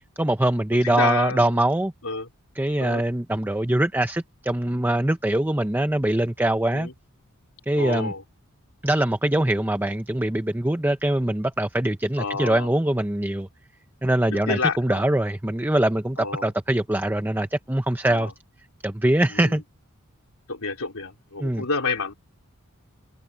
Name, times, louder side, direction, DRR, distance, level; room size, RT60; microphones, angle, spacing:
voice 1, 0.2-1.9 2.6-6.9 7.7-8.1 8.8-13.5 14.0-18.3 18.8-19.6 21.4-21.6, right 1 dB, 10° right, 0.8 m, -23 dB
voice 2, 0.8-1.5 2.0-2.3 2.8-3.0 6.7-6.9 7.8-8.2 12.2-12.7 14.3-15.1 16.2-16.5 18.0-18.3 19.3-19.6 20.5-22.1, left 4 dB, 75° left, 3.2 m, -29 dB
head